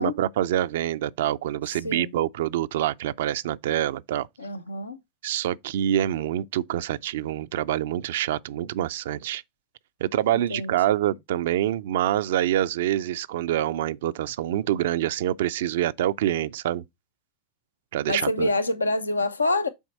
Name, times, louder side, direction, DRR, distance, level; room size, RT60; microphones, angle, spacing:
voice 1, 0.0-4.3 5.2-9.4 10.0-16.8 17.9-18.5, right 12 dB, 70° right, 0.4 m, -26 dB
voice 2, 4.4-5.0 10.3-10.7 18.1-19.7, left 2 dB, 90° left, 0.7 m, -26 dB
7.1 x 4.4 x 4.1 m
figure-of-eight pair, 85°, 0 cm